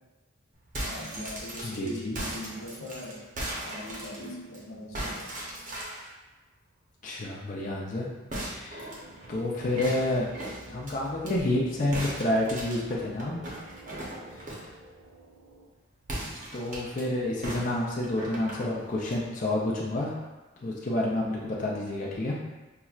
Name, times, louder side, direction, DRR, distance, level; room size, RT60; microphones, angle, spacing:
sound 1, 0.6-4.6 4.9-6.1 8.3-11.3 11.9-14.7 16.0-17.0 17.4-19.2, right 1 dB, 40° right, 0.7 m, -38 dB
voice 1, 0.8-3.2 3.6-5.3, left 1 dB, 85° left, -3 dB, 0.8 m, -40 dB
voice 2, 1.6-2.2 7.0-8.1 8.4-8.9 9.3-10.3 10.7-13.4 16.5-20.2 20.6-22.4, left 1 dB, 40° left, -4 dB, 0.4 m, -29 dB
sound 2, 9.0-15.7, right 1 dB, 80° right, 0.6 m, -51 dB
5.6 x 2.0 x 2.3 m, 1.1 s
head